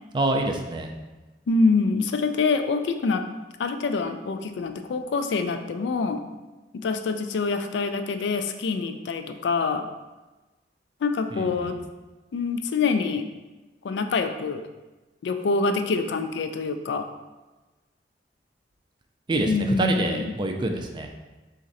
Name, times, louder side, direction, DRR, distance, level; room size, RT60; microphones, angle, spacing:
voice 1, 0.1-0.9 11.3-11.7 19.3-21.1, right 2 dB, 25° right, 3 dB, 0.3 m, -26 dB
voice 2, 1.5-3.2 3.6-6.2 6.7-9.9 11.0-11.8 12.3-13.3 13.8-14.6 15.2-17.1 19.5-20.2, left 4 dB, 85° left, 8 dB, 0.3 m, -25 dB
4.1 x 2.5 x 4.0 m, 1.2 s
head